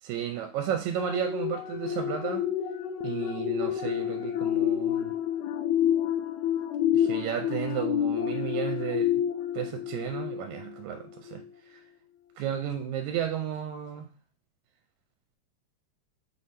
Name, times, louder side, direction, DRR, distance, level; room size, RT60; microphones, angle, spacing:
voice 1, 0.0-2.5 3.0-5.2 6.9-9.2 9.5-11.4 11.7-11.8 12.4-14.1, right 9 dB, 85° right, 2.0 m, -33 dB
sound 1, 1.0-10.8 11.3-11.5, left 10 dB, 80° left, 1.9 m, -29 dB
5.7 x 3.2 x 5.7 m
omnidirectional pair, 3.3 m